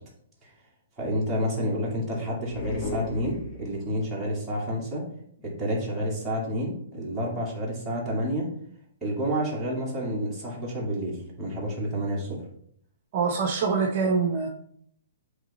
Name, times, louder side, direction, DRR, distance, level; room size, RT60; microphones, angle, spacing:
voice 1, 1.0-5.1 5.4-8.5 9.0-12.4, equal, 5° right, -7 dB, 2.2 m, -29 dB
sound 1, 2.4-4.0, left 2 dB, 30° left, 0.9 m, -35 dB
voice 2, 13.1-14.5, right 5 dB, 45° right, 2 dB, 0.8 m, -24 dB
7.9 x 3.3 x 4.2 m, 0.67 s
hypercardioid pair, 155°, 0 cm